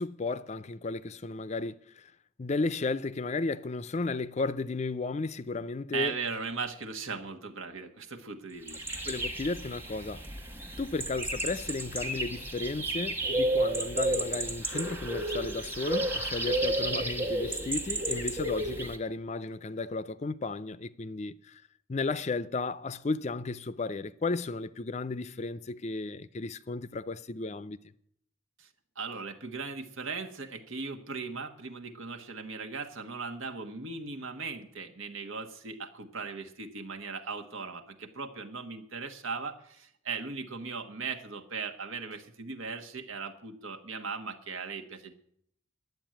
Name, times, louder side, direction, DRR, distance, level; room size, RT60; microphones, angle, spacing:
voice 1, 0.0-2.1 2.4-6.1 9.1-10.2 10.8-21.6 21.9-27.8, left 3 dB, 35° left, 0.5 m, -34 dB
voice 2, 5.9-9.0 28.6-28.7 28.9-45.1, right 4 dB, 90° right, 1.4 m, -38 dB
sound 1, 8.7-19.0, right 1 dB, 10° right, 1.2 m, -32 dB
11.0 x 8.0 x 9.0 m
head